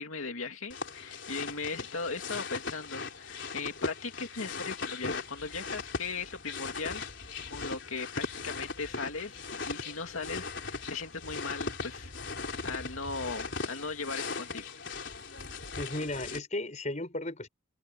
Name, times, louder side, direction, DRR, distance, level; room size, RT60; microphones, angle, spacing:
voice 1, 0.0-14.7, left 4 dB, 90° left, 2.7 m, -38 dB
sound 1, 0.7-16.4, left 4 dB, 60° left, 4.1 m, -39 dB
voice 2, 15.8-17.5, left 1 dB, 35° left, 5.5 m, -35 dB
head